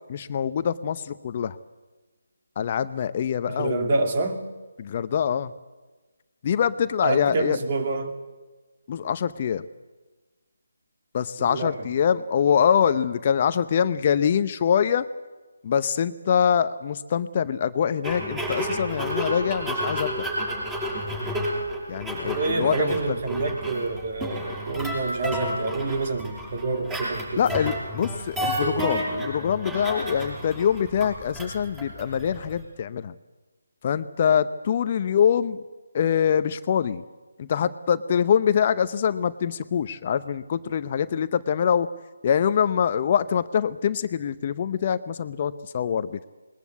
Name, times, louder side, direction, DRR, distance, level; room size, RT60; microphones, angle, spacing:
voice 1, 0.1-1.6 2.6-3.9 4.8-5.5 6.4-7.6 8.9-9.6 11.1-15.1 15.6-20.3 21.9-22.9 27.4-33.1 33.8-35.6 35.9-37.0 37.4-41.9 42.2-46.3, left 8 dB, 35° left, 13 dB, 0.7 m, -24 dB
voice 2, 3.5-4.4 7.0-8.2 11.4-11.9 22.2-27.6, right 3 dB, 40° right, 6 dB, 2.8 m, -27 dB
Guitar Scratches, 18.0-32.6, equal, 10° right, 5.7 m, -31 dB
20.5 x 20.0 x 8.4 m, 1.3 s
figure-of-eight pair, 155°, 0 cm